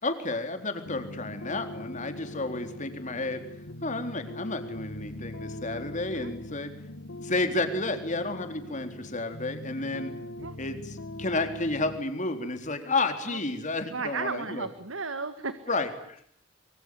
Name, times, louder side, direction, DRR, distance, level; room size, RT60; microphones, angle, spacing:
voice 1, 0.0-3.4 3.8-6.7 7.2-10.1 10.6-14.7 15.7-16.2, left 2 dB, 40° left, 7 dB, 3.9 m, -31 dB
sound 1, 0.9-12.0, left 1 dB, 80° left, 2.2 m, -41 dB
voice 2, 13.9-15.6, right 4 dB, 85° right, 11 dB, 1.7 m, -34 dB
25.5 x 24.5 x 9.5 m, 0.63 s
head